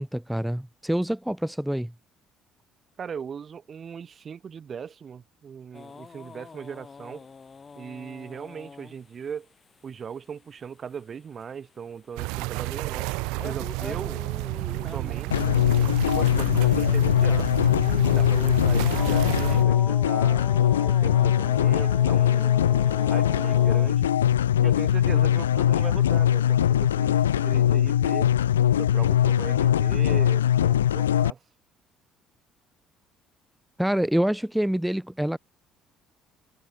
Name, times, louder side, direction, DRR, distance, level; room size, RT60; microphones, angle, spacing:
voice 1, 0.0-1.9 33.8-35.4, equal, 5° right, 1.1 m, -26 dB
voice 2, 3.0-7.3 7.8-9.5 9.8-13.1 13.4-14.2 14.8-15.6 16.0-17.5 18.0-20.5 20.8-24.1 24.6-28.3 28.7-31.4, right 7 dB, 40° right, 4.1 m, -38 dB
sound 1, 5.7-9.0 13.0-23.9, left 5 dB, 30° left, 3.1 m, -40 dB
sound 2, 12.2-19.6, right 27 dB, 65° right, 0.4 m, -31 dB
sound 3, 15.3-31.3, left 10 dB, 80° left, 0.4 m, -21 dB
figure-of-eight pair, 50°, 0 cm